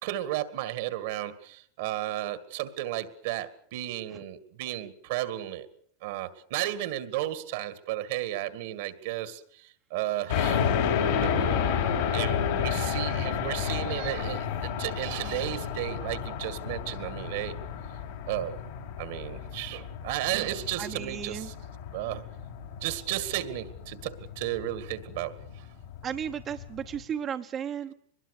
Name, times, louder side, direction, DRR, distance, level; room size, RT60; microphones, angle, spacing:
voice 1, 0.0-5.7 6.0-10.7 11.2-11.6 12.1-17.6 18.3-18.6 19.0-21.5 21.9-22.2 22.8-25.3, right 14 dB, 70° right, 12 dB, 2.0 m, -33 dB
sound 1, 10.3-27.0, left 7 dB, 75° left, 5.4 m, -31 dB
voice 2, 20.8-21.5 26.0-27.9, right 8 dB, 35° right, 5 dB, 1.1 m, -34 dB
22.5 x 21.5 x 6.7 m, 0.64 s
hypercardioid pair, 110°, 0 cm